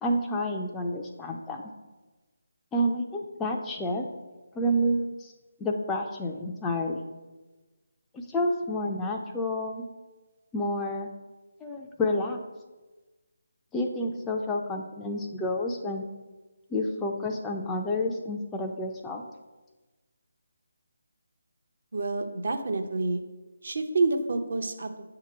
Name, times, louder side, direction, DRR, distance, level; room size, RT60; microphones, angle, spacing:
voice 1, 0.0-1.6 2.7-4.1 4.5-5.3 5.6-7.1 8.1-9.8 10.5-11.1 11.6-12.4 13.7-16.1 16.7-19.2, left 1 dB, 10° left, 1 dB, 0.5 m, -29 dB
voice 2, 21.9-23.2 23.6-25.0, right 3 dB, 60° right, 4 dB, 0.8 m, -28 dB
8.1 x 2.9 x 6.0 m, 1.2 s
figure-of-eight pair, 150°, 0 cm